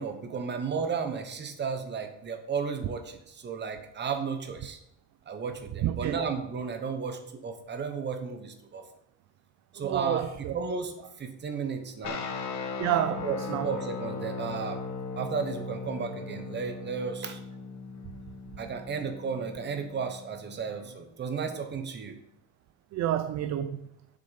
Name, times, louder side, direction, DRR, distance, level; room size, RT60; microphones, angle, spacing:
voice 1, 0.0-4.8 5.3-8.8 9.7-12.2 13.1-14.8 15.2-17.4 18.6-22.2, right 5 dB, 25° right, 1.1 m, -33 dB
voice 2, 5.8-6.2 9.8-10.5 12.8-13.2 13.5-13.7 22.9-23.8, right 11 dB, 45° right, 0.4 m, -29 dB
sound 1, 12.0-20.9, left 4 dB, 45° left, 1.4 m, -38 dB
7.8 x 6.4 x 5.7 m
cardioid pair, 170°, 40 cm